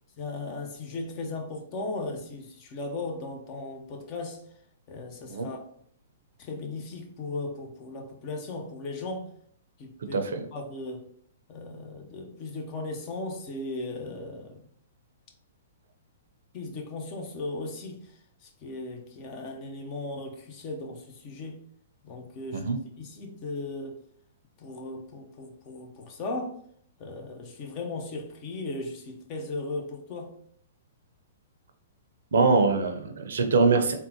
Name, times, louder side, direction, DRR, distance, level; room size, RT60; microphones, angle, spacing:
voice 1, 0.2-4.4 4.9-5.6 6.4-9.3 9.8-10.2 10.5-11.1 11.5-14.6 16.5-21.6 22.0-22.7 23.0-24.0 24.6-26.6 27.0-30.3, left 2 dB, 35° left, 0.7 m, -37 dB
voice 2, 10.1-10.4 22.5-22.8 32.3-33.9, right 4 dB, 70° right, 0.5 m, -23 dB
3.6 x 2.2 x 2.8 m
figure-of-eight pair, 115°, 0 cm